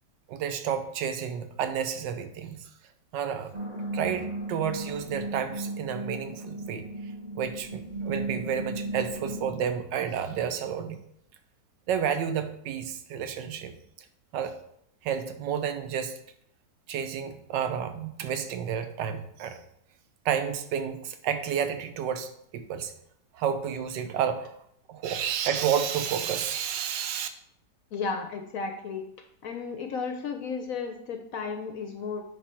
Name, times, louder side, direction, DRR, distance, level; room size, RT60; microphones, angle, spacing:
voice 1, 0.3-2.7 3.1-6.9 7.3-11.0 11.9-13.7 14.3-14.6 15.0-16.2 16.9-19.6 20.2-22.9 23.3-24.6 24.9-27.3, right 8 dB, 80° right, 9 dB, 1.4 m, -31 dB
sound 1, 3.5-9.5, right 2 dB, 25° right, 1.3 m, -36 dB
voice 2, 27.9-29.0 29.4-32.2, left 5 dB, 65° left, 5 dB, 0.9 m, -33 dB
9.4 x 3.7 x 4.4 m, 0.73 s
omnidirectional pair, 1.9 m